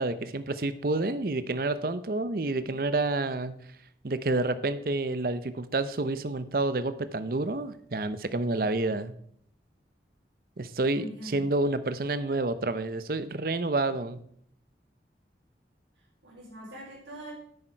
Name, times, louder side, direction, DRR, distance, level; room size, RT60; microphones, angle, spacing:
voice 1, 0.0-3.5 4.0-9.1 10.6-14.2, right 2 dB, 50° right, 13 dB, 0.7 m, -29 dB
voice 2, 10.9-11.5 15.9-17.3, right 1 dB, 85° right, -8 dB, 4.1 m, -43 dB
10.5 x 8.7 x 4.4 m, 0.65 s
head